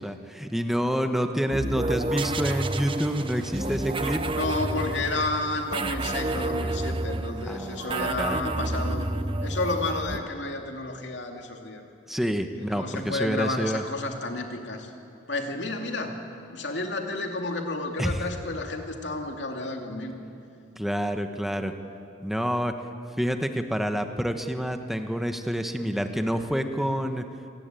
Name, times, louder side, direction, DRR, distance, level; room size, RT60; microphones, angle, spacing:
voice 1, 0.0-4.2 7.5-8.4 12.1-13.8 18.0-18.2 20.8-21.7 22.2-22.8 23.2-27.3, equal, ahead, 6 dB, 1.2 m, -28 dB
sound 1, 1.5-10.2, right 2 dB, 30° right, 0.9 m, -30 dB
voice 2, 4.4-9.1 9.4-11.8 12.6-14.9 15.3-16.2 16.5-20.2, left 2 dB, 65° left, 3 dB, 2.7 m, -31 dB
26.0 x 18.0 x 9.2 m, 2.5 s
head